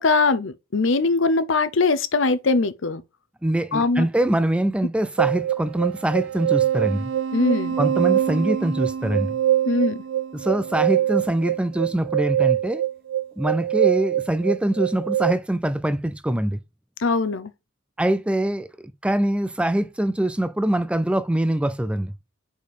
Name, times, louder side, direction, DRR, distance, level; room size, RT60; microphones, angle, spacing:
voice 1, 0.0-3.0 3.7-4.1 7.3-7.8 9.7-10.0 17.0-17.5, left 3 dB, 65° left, 0.7 m, -21 dB
voice 2, 3.4-7.1 7.8-9.4 10.3-12.8 13.4-16.6 18.0-22.1, right 1 dB, 5° right, 0.3 m, -24 dB
sound 1, 5.2-15.3, right 11 dB, 75° right, 0.4 m, -23 dB
5.1 x 4.3 x 4.8 m
head